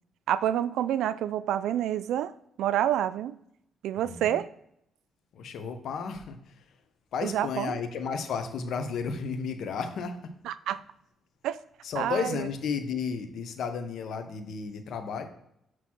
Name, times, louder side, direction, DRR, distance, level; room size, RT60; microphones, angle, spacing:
voice 1, 0.3-3.4 3.8-4.5 7.2-7.8 10.5-10.8 11.4-11.6 12.0-12.4, right 11 dB, 80° right, 0.3 m, -28 dB
voice 2, 4.0-4.4 5.3-6.8 7.1-10.3 11.8-15.3, left 5 dB, 70° left, 0.8 m, -33 dB
6.2 x 3.0 x 5.7 m
cardioid pair, 90°, 0 cm